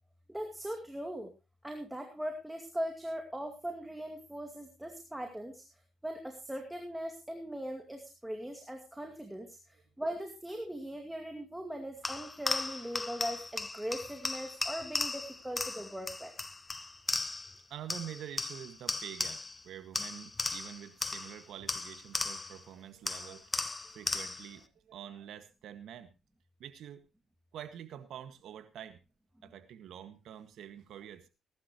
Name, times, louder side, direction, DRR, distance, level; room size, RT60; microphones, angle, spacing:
voice 1, 0.3-1.3 1.6-5.6 6.0-9.6 10.0-16.3, equal, 5° right, 3 dB, 2.4 m, -40 dB
sound 1, 12.0-17.6 17.9-19.6 19.9-22.6 23.1-24.5, left 3 dB, 20° left, 1.1 m, -37 dB
voice 2, 17.5-26.1 26.6-27.0 27.5-29.0 29.4-31.2, right 10 dB, 75° right, 10 dB, 1.8 m, -47 dB
20.5 x 11.5 x 3.1 m, 0.27 s
cardioid pair, 90°, 0 cm